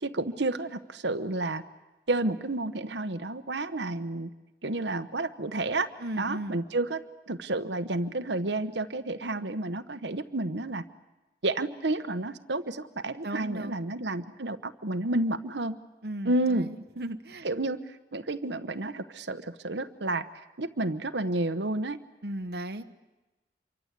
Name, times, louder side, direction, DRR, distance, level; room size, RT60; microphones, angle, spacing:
voice 1, 0.0-1.6 2.1-4.3 4.6-5.9 6.2-10.8 11.4-15.7 16.2-16.7 17.4-20.3 20.6-22.0, right 2 dB, 80° right, 9 dB, 1.2 m, -30 dB
voice 2, 6.0-6.6 13.2-13.8 16.0-17.5 22.2-22.8, right 1 dB, 60° right, 7 dB, 1.1 m, -36 dB
27.0 x 24.0 x 8.3 m, 1.1 s
head